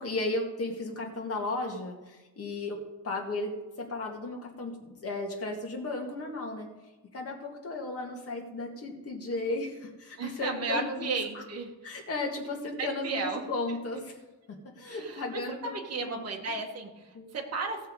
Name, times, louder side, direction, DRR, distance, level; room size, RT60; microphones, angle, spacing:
voice 1, 0.0-6.7 7.1-11.4 11.8-14.2 14.5-16.3 17.1-17.3, left 2 dB, 40° left, 1 dB, 2.1 m, -35 dB
voice 2, 10.2-11.7 12.8-13.4 13.7-13.8 14.9-17.9, right 4 dB, 40° right, 2 dB, 1.8 m, -34 dB
17.0 x 6.6 x 4.8 m, 1.2 s
cardioid pair, 165°, 37 cm